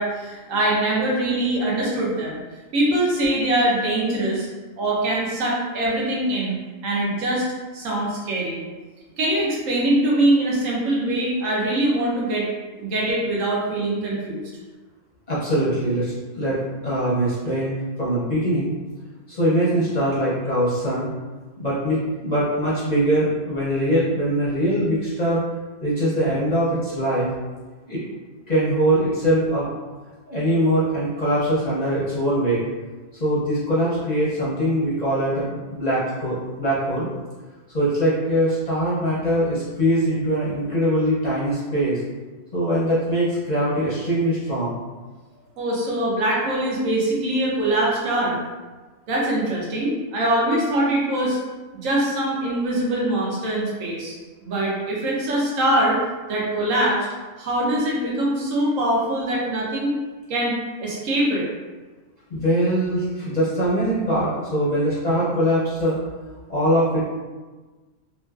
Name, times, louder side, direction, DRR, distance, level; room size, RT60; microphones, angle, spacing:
voice 1, 0.0-2.4 2.7-4.5 4.8-6.6 6.8-7.5 7.7-8.6 9.2-12.5 12.8-14.4 45.6-48.4 49.1-51.4 51.8-54.2 54.4-56.0 56.3-57.1 57.4-60.0 60.3-61.4, right 1 dB, 85° right, -4 dB, 1.2 m, -23 dB
voice 2, 15.3-16.6 16.8-18.7 19.3-21.1 21.6-25.4 25.8-27.3 27.9-28.0 28.5-29.7 30.3-32.6 33.2-37.1 37.7-42.0 42.5-44.8 62.3-66.0 66.5-67.1, right 1 dB, 45° left, -8 dB, 0.6 m, -22 dB
3.0 x 2.5 x 2.4 m, 1.3 s
omnidirectional pair, 1.3 m